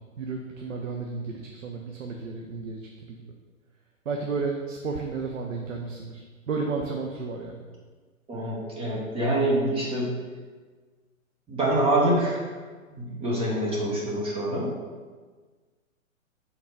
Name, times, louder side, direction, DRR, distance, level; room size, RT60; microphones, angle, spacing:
voice 1, 0.2-3.2 4.1-7.6, right 4 dB, 65° right, 1 dB, 0.9 m, -32 dB
voice 2, 8.3-10.1 11.5-12.5 12.9-14.7, right 1 dB, 15° right, -4 dB, 1.1 m, -25 dB
6.0 x 3.9 x 5.2 m, 1.4 s
figure-of-eight pair, 125°, 41 cm